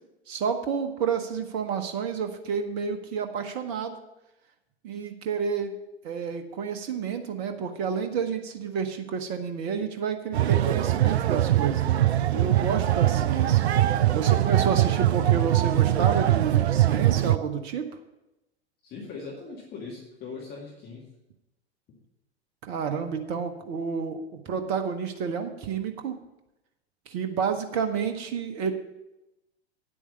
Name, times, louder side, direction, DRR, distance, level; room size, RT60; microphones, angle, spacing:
voice 1, 0.3-4.0 4.8-5.7 6.0-11.8 12.3-13.7 14.1-17.8 22.6-26.2 27.1-28.7, right 6 dB, 40° right, 7 dB, 1.2 m, -30 dB
sound 1, 10.3-17.4, right 13 dB, 70° right, 0.5 m, -22 dB
voice 2, 18.8-21.1, left 4 dB, 30° left, -3 dB, 2.4 m, -40 dB
9.8 x 8.5 x 5.5 m, 0.93 s
figure-of-eight pair, 90°, 33 cm